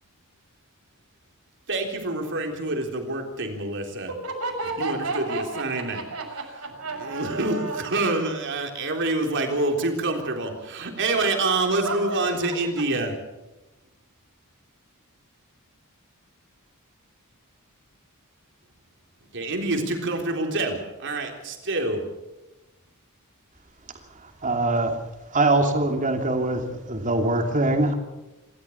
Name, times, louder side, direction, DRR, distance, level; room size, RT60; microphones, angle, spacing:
voice 1, 1.7-4.1 4.8-6.0 7.0-13.1 19.3-22.0, right 2 dB, 55° right, 3 dB, 3.6 m, -26 dB
voice 2, 4.2-7.9 11.8-12.2, right 3 dB, 85° right, 1 dB, 6.4 m, -32 dB
voice 3, 24.2-25.0 25.3-27.9, right 2 dB, 35° right, 4 dB, 2.8 m, -23 dB
27.0 x 13.5 x 7.2 m, 1.0 s
head